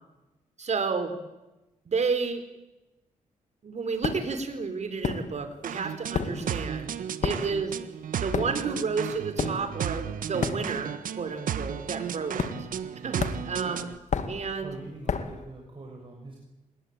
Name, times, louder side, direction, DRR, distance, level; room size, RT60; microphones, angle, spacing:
voice 1, 0.6-1.1 1.8-2.4 3.6-6.9 7.2-7.8 8.2-12.5 13.0-13.9 14.3-14.7, right 5 dB, 55° right, 9 dB, 4.5 m, -31 dB
sound 1, 4.0-4.4 5.0-5.7 5.9-11.1 11.3-11.6 12.4-12.9 13.2-15.4, left 5 dB, 60° left, 2.3 m, -32 dB
sound 2, 5.6-14.0, right 8 dB, 80° right, 1.4 m, -34 dB
voice 2, 14.6-16.4, right 2 dB, 40° right, 1 dB, 6.5 m, -44 dB
28.0 x 21.0 x 9.1 m, 1.0 s
cardioid pair, 80°, 14 cm